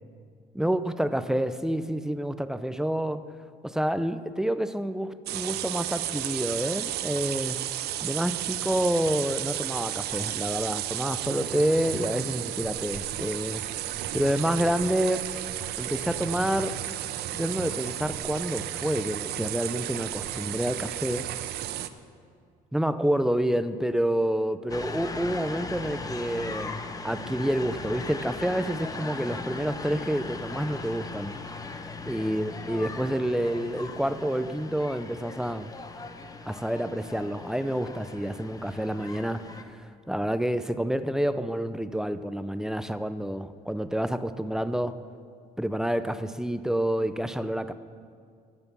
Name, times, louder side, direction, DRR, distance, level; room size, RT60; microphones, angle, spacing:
voice 1, 0.5-3.2 3.6-7.6 8.0-13.6 14.1-15.3 15.8-16.8 17.3-21.3 22.7-31.4 32.1-35.7 36.5-45.0 45.6-47.7, right 1 dB, 5° right, 12 dB, 0.4 m, -28 dB
sound 1, 5.3-21.9, right 13 dB, 70° right, 0.5 m, -33 dB
sound 2, 24.7-39.6, left 3 dB, 20° left, 0.8 m, -38 dB
11.0 x 8.0 x 6.9 m, 2.2 s
cardioid pair, 110°, 17 cm